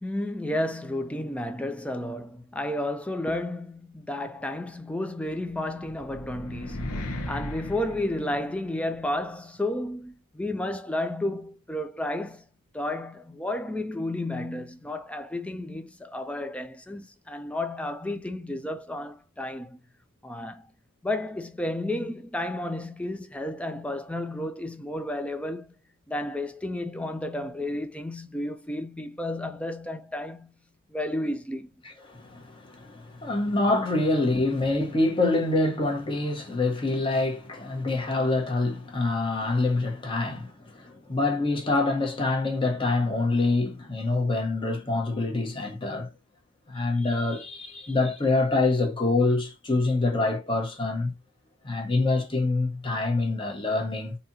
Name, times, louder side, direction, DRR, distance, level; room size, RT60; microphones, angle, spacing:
voice 1, 0.0-12.5 12.7-19.8 20.2-20.7 21.0-25.7 26.1-30.5 30.9-31.7 46.9-48.0, left 1 dB, 5° left, 0.3 m, -32 dB
sound 1, 5.5-8.9, left 1 dB, 90° left, 0.9 m, -36 dB
voice 2, 32.1-46.1 46.7-51.1 51.6-54.2, left 2 dB, 25° left, 0.9 m, -26 dB
4.0 x 2.8 x 2.7 m
head